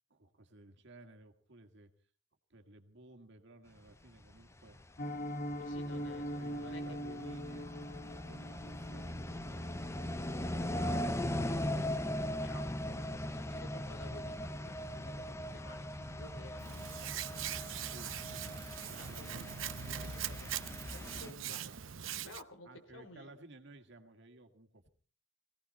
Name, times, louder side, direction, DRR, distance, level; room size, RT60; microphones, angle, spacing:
voice 1, 0.1-1.9 2.5-4.8 5.9-7.7 8.0-11.0 17.8-20.6 21.4-21.8 22.1-22.3 22.6-24.9, right 2 dB, 65° right, 5 dB, 2.0 m, -57 dB
sound 1, 4.7-21.3, left 1 dB, 15° left, 0.7 m, -39 dB
Piano, 5.0-15.9 16.1-16.4 16.7-16.8 17.2-17.4 17.7-17.8, equal, 45° left, 1.2 m, -45 dB
voice 2, 5.6-7.0 10.9-12.0 12.4-17.9 18.7-19.5 20.0-20.5 20.8-21.6 22.0-23.3, left 2 dB, 85° left, 7 dB, 3.2 m, -54 dB
Hands, 16.6-22.4, right 11 dB, 85° right, 0.8 m, -42 dB
20.0 x 17.0 x 4.2 m, 0.42 s
head